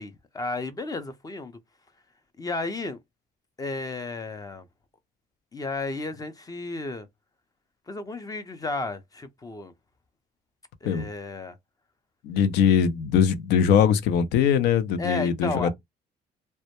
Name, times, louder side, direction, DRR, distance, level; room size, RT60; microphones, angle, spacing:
voice 1, 0.0-1.6 2.4-3.0 3.6-4.7 5.5-7.1 7.9-9.7 10.8-11.6 15.0-15.7, left 3 dB, 20° left, 0.4 m, -33 dB
voice 2, 12.2-15.7, left 7 dB, 85° left, 0.5 m, -21 dB
2.1 x 2.0 x 2.8 m
cardioid pair, 110°, 17 cm